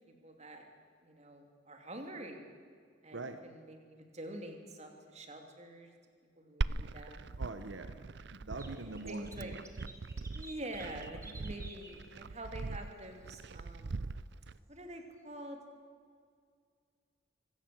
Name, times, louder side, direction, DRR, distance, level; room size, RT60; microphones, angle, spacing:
voice 1, 0.2-0.7 1.0-2.5 3.0-5.9 6.4-7.3 8.6-9.5 10.3-14.0 14.7-15.6, right 1 dB, 35° right, 4 dB, 3.0 m, -46 dB
Glass, 6.6-14.6, right 3 dB, 60° right, 0.6 m, -41 dB
voice 2, 7.4-7.9 8.3-9.9, right 2 dB, 80° right, 8 dB, 1.2 m, -43 dB
sound 1, 8.6-12.0 12.6-12.7 13.1-13.2 13.5-13.6, right 2 dB, 15° right, 2.0 m, -52 dB
26.0 x 17.0 x 7.8 m, 2.1 s
head